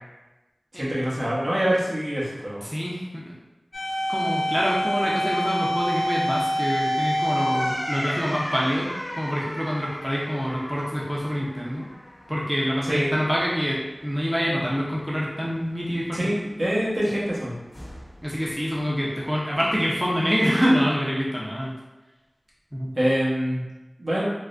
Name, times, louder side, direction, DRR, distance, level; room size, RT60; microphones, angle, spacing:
voice 1, 0.7-2.6 12.8-13.1 16.1-17.6 22.9-23.6 24.0-24.2, equal, 65° right, -8 dB, 1.0 m, -25 dB
voice 2, 2.6-3.3 4.1-11.9 12.3-16.2 18.2-21.7 22.7-22.9, equal, 5° right, -5 dB, 0.6 m, -26 dB
sound 1, 3.7-12.4 12.7-12.8 17.7-18.3, equal, 55° left, 0.7 m, -28 dB
3.5 x 2.1 x 2.5 m, 1.1 s
wide cardioid pair, 60°, 0 cm